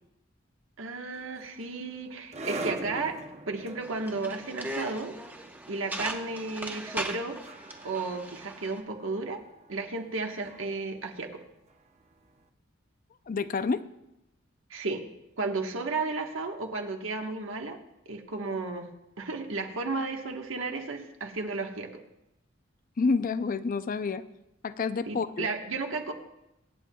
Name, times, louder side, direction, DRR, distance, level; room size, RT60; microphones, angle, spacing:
voice 1, 0.8-3.2 3.5-5.1 5.7-7.4 7.8-9.4 9.7-11.4 14.7-15.0 15.4-17.8 18.0-18.9 19.2-22.0 25.1-26.1, right 3 dB, 85° right, 3 dB, 1.4 m, -33 dB
sound 1, 1.1-12.3, right 2 dB, 35° right, 0.7 m, -44 dB
sound 2, 3.8-8.8, right 1 dB, 10° right, 1.0 m, -39 dB
voice 2, 13.3-13.8 23.0-24.2 24.6-25.5, left 4 dB, 45° left, 13 dB, 0.5 m, -28 dB
24.5 x 9.2 x 2.3 m, 0.89 s
head